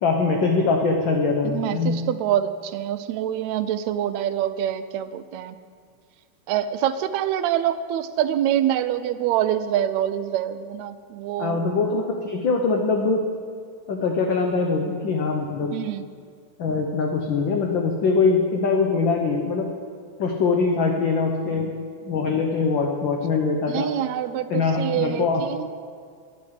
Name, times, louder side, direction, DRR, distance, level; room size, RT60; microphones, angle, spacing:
voice 1, 0.0-2.0 11.4-13.2 13.9-15.8 16.6-19.7 20.2-21.7 22.0-23.9 24.5-25.4, left 4 dB, 65° left, 1 dB, 1.2 m, -22 dB
voice 2, 1.4-5.6 6.5-11.6 15.7-16.1 23.7-25.7, right 11 dB, 80° right, 12 dB, 1.8 m, -25 dB
10.5 x 8.6 x 8.1 m, 2.1 s
omnidirectional pair, 3.3 m